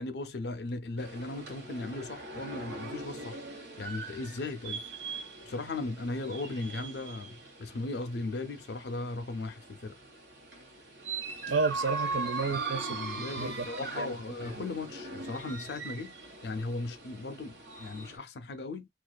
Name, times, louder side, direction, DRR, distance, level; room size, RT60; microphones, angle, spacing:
voice 1, 0.0-3.4 3.8-4.8 5.4-10.0 12.5-12.6 12.9-16.2 16.4-18.9, left 2 dB, 60° left, 0.4 m, -37 dB
sound 1, 1.0-18.2, right 3 dB, 65° right, 0.9 m, -41 dB
voice 2, 11.5-14.1 14.5-14.6, right 4 dB, 85° right, 0.5 m, -32 dB
2.4 x 2.3 x 2.2 m
head